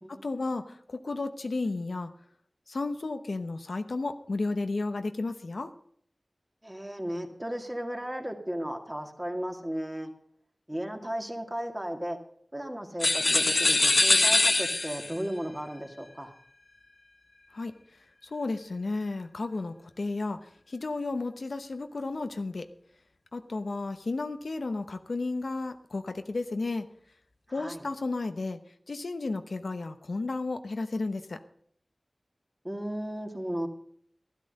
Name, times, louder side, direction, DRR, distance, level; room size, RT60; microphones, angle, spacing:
voice 1, 0.1-2.1 2.7-5.7 17.5-17.7 18.2-20.4 20.7-22.7 23.3-26.9 27.5-28.6 28.9-31.4, left 3 dB, 85° left, 8 dB, 0.9 m, -33 dB
voice 2, 6.6-10.1 10.7-12.2 12.5-16.3 27.5-27.9 32.6-33.7, equal, 15° right, 3 dB, 2.1 m, -35 dB
sound 1, 13.0-15.2, left 2 dB, 50° left, 0.6 m, -23 dB
13.0 x 12.5 x 5.3 m, 0.64 s
wide cardioid pair, 70°, 0 cm